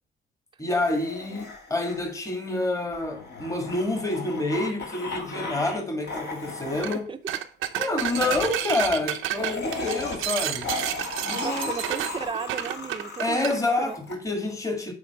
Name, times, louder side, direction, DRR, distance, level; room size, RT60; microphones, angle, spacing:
voice 1, 0.6-7.1 7.8-10.7 11.2-11.7 13.2-14.9, left 2 dB, 15° left, 1.7 m, -28 dB
sound 1, 0.7-5.8 6.0-7.0 8.0-14.1, left 3 dB, 55° left, 2.1 m, -36 dB
sound 2, 6.7-7.0 7.3-13.6, right 12 dB, 85° right, 0.7 m, -30 dB
voice 2, 11.3-13.9 14.8-14.9, right 6 dB, 25° right, 0.6 m, -35 dB
8.5 x 3.8 x 4.7 m
cardioid pair, 90°, 20 cm